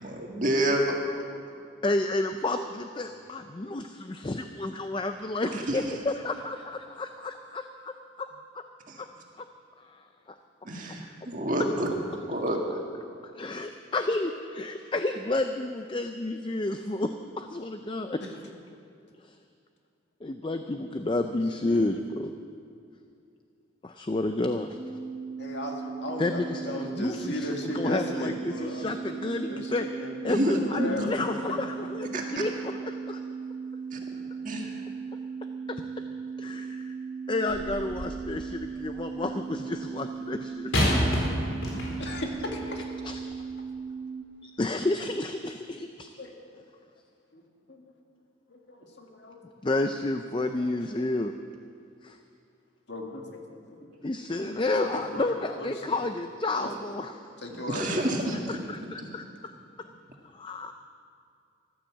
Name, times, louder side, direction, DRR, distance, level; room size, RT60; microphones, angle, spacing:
voice 1, 0.0-1.0 5.5-5.8 8.9-9.0 10.6-11.9 12.3-12.6 30.3-31.1 32.1-32.2 33.9-34.0 34.4-34.8 57.5-58.6 59.0-59.1, right 1 dB, 40° right, 1 dB, 1.8 m, -28 dB
voice 2, 1.8-8.3 8.5-8.6 9.0-9.1 9.4-9.5 9.8-10.0 13.3-18.2 19.2-19.4 20.2-22.3 23.8-24.8 26.2-33.2 35.7-35.8 36.4-36.9 37.3-41.0 43.0-43.2 44.4-46.1 49.6-51.3 52.0-52.2 54.0-57.1 57.9-58.0 58.5-59.5 59.8-59.9 60.3-60.7, left 2 dB, 25° left, 7 dB, 0.4 m, -31 dB
voice 3, 20.6-21.2 21.6-21.9 25.4-30.3 30.7-31.4 42.0-42.8 46.2-46.3 47.3-47.4 47.7-47.9 48.5-49.4 50.5-50.7 50.9-51.0 52.9-53.4 53.7-53.9 54.7-56.0 56.6-56.7 57.4-58.2, left 1 dB, 65° left, 1 dB, 2.0 m, -37 dB
sound 1, 24.8-44.2, right 5 dB, 20° right, 1.0 m, -37 dB
sound 2, 37.5-38.3 40.7-42.3 43.1-43.2, equal, 90° left, 4.0 m, -28 dB
14.5 x 11.5 x 7.4 m, 2.4 s
head